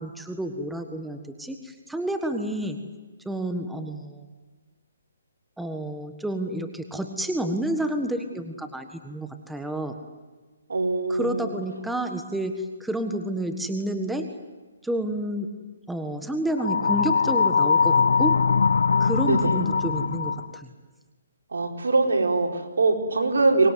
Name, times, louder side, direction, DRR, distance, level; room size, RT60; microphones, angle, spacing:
voice 1, 0.0-2.8 3.2-4.3 5.6-10.0 11.1-14.3 14.8-15.5 15.9-18.4 19.0-20.7, right 1 dB, 5° right, 6 dB, 1.5 m, -30 dB
voice 2, 10.7-11.5 19.3-19.5 21.5-23.7, right 3 dB, 80° right, 1 dB, 4.6 m, -22 dB
sound 1, 16.6-20.6, left 5 dB, 75° left, 0.7 m, -21 dB
24.5 x 20.0 x 9.5 m, 1.3 s
hypercardioid pair, 155°, 0 cm